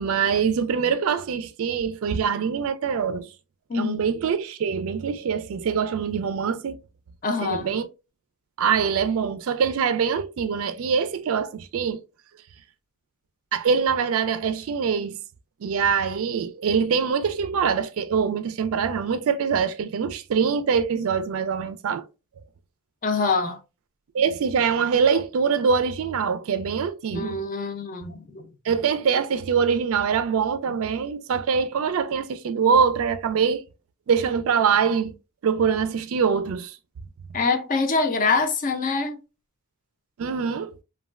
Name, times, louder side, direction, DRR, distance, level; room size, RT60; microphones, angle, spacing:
voice 1, 0.0-3.3 3.7-6.8 7.4-7.9 8.6-12.0 13.5-15.2 15.6-22.0 24.1-27.4 28.7-33.6 34.1-35.1 35.4-36.8 40.2-40.7, right 6 dB, 65° right, 0.4 m, -24 dB
voice 2, 3.7-4.0 7.2-7.7 23.0-23.6 27.1-28.4 37.3-39.2, left 4 dB, 40° left, 0.5 m, -25 dB
3.1 x 2.2 x 2.3 m
head